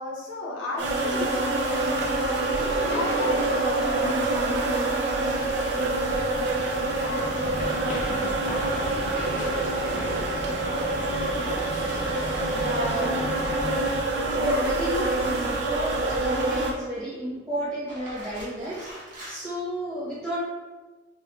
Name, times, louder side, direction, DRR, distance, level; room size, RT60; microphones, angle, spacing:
voice 1, 0.0-9.2, left 2 dB, 85° left, -3 dB, 0.9 m, -37 dB
sound 1, 0.8-16.7, right 2 dB, 65° right, 0.5 m, -26 dB
sound 2, 2.0-3.8 4.1-7.0 7.3-15.7 16.2-16.8 17.7-19.4, equal, 45° right, 1.2 m, -41 dB
sound 3, 6.0-14.0, left 1 dB, 40° left, 0.4 m, -36 dB
voice 2, 12.5-13.4 14.3-18.9 19.2-20.4, right 1 dB, 15° right, -13 dB, 1.2 m, -32 dB
4.5 x 2.3 x 2.3 m, 1.3 s
head